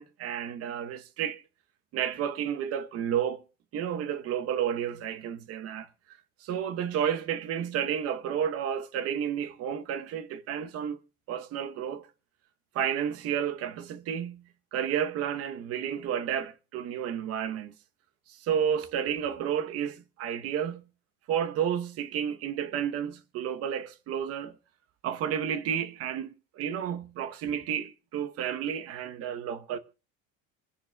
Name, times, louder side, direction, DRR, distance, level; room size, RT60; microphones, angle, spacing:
voice 1, 0.0-1.4 1.9-3.4 3.7-5.9 6.4-11.0 11.3-12.1 12.7-17.7 18.4-20.9 21.3-24.5 25.0-29.8, right 9 dB, 45° right, 0.9 m, -31 dB
27.5 x 10.0 x 2.2 m
cardioid pair, 155°, 32 cm